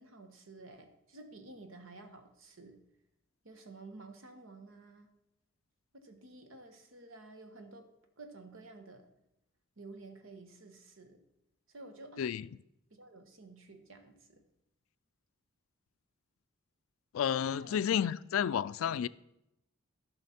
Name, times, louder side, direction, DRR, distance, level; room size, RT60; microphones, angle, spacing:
voice 1, 0.0-2.8 3.4-5.1 5.9-7.9 8.2-9.1 9.8-11.2 11.7-12.3 13.0-14.4 17.5-17.9 18.9-19.0, right 2 dB, 80° right, 1.2 m, -52 dB
voice 2, 17.1-19.1, left 8 dB, 90° left, 0.3 m, -31 dB
13.0 x 5.7 x 4.3 m
head